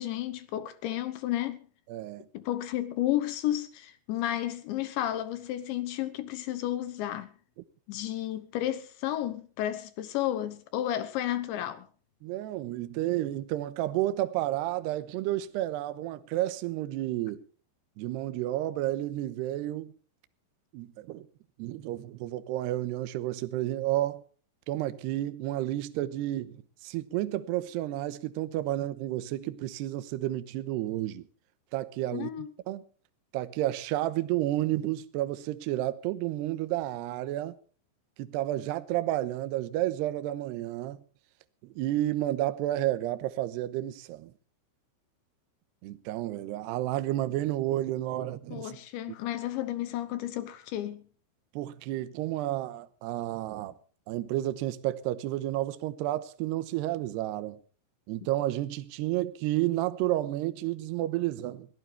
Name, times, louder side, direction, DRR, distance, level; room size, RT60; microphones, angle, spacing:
voice 1, 0.0-1.7 2.3-7.3 7.9-11.9 32.1-32.5 48.5-51.0, left 13 dB, 75° left, 3.1 m, -32 dB
voice 2, 1.9-2.3 12.2-17.4 18.0-20.0 20.7-21.3 21.6-24.2 24.7-31.3 31.7-32.8 33.3-37.6 38.2-41.0 41.6-44.3 45.8-48.8 51.5-53.7 54.1-57.6 58.1-61.7, right 14 dB, 75° right, 2.7 m, -31 dB
22.0 x 16.5 x 3.3 m
omnidirectional pair, 5.7 m